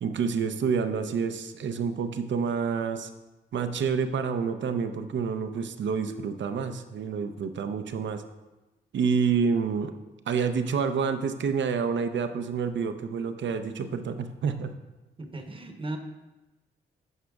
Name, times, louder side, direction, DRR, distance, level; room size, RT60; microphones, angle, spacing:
voice 1, 0.0-3.1 3.5-8.2 8.9-9.9 10.3-14.7, right 6 dB, 60° right, 9 dB, 0.6 m, -28 dB
voice 2, 15.2-16.0, right 2 dB, 25° right, 5 dB, 0.9 m, -36 dB
10.5 x 5.0 x 2.3 m, 1.1 s
supercardioid pair, 50°, 21 cm